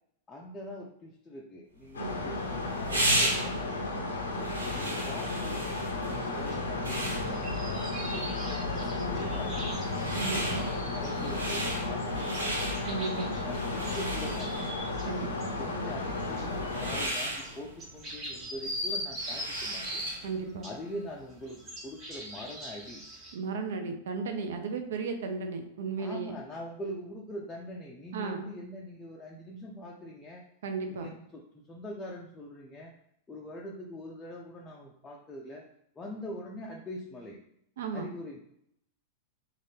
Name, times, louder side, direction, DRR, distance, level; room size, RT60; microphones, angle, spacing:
voice 1, 0.3-4.0 4.6-7.8 8.1-9.7 10.3-12.7 13.4-14.7 15.2-20.1 20.6-23.0 26.0-30.4 30.9-32.9 33.3-35.7 36.0-37.4 37.9-38.4, equal, 20° left, -2 dB, 0.4 m, -43 dB
sound 1, 1.8-20.4, right 1 dB, 85° right, 0.8 m, -36 dB
sound 2, 1.9-17.1, left 2 dB, 80° left, 0.4 m, -33 dB
sound 3, 6.5-6.6 7.1-15.1 15.4-15.5 16.0-20.2 20.6-23.3, equal, 30° right, 1.3 m, -41 dB
voice 2, 10.2-10.6 12.9-13.3 15.1-15.5 20.2-20.7 23.3-26.3 28.1-28.5 30.6-31.1 37.8-38.1, right 4 dB, 70° right, 5 dB, 0.4 m, -35 dB
2.6 x 2.4 x 3.4 m, 0.75 s
hypercardioid pair, 100°, 0 cm